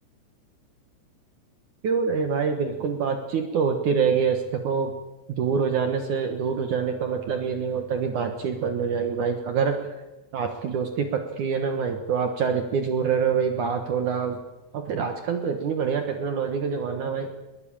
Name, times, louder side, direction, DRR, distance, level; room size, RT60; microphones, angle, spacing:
voice 1, 1.8-4.9 5.4-9.8 10.3-14.4 14.7-17.3, right 6 dB, 65° right, 6 dB, 1.9 m, -25 dB
21.5 x 19.0 x 8.8 m, 1.1 s
omnidirectional pair, 5.4 m